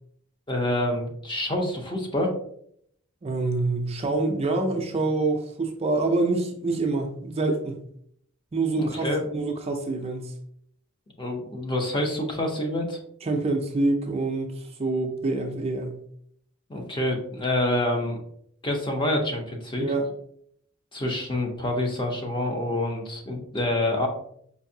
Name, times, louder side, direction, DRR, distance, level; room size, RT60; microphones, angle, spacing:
voice 1, 0.5-2.3 8.8-9.2 11.2-13.0 16.7-18.2 18.6-19.9 20.9-24.1, left 1 dB, 20° left, 2 dB, 0.6 m, -27 dB
voice 2, 3.2-7.7 8.5-10.3 13.2-16.0 19.8-20.1, right 2 dB, 30° right, 3 dB, 0.4 m, -26 dB
4.5 x 2.6 x 2.7 m, 0.67 s
head